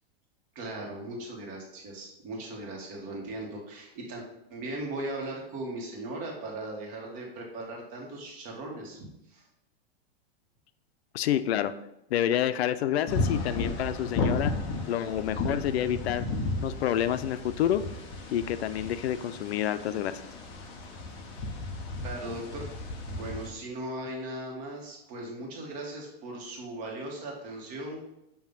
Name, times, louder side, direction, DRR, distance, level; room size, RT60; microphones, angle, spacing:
voice 1, 0.5-4.2 4.5-9.4 22.0-28.0, right 1 dB, 25° right, -1 dB, 1.4 m, -38 dB
voice 2, 11.1-11.7 12.1-14.5 14.9-16.3 16.6-17.8 18.3-20.2, left 11 dB, 80° left, 12 dB, 0.5 m, -28 dB
sound 1, 13.1-23.5, left 3 dB, 15° left, 0.4 m, -34 dB
7.1 x 2.7 x 5.3 m, 0.82 s
supercardioid pair, 170°, 31 cm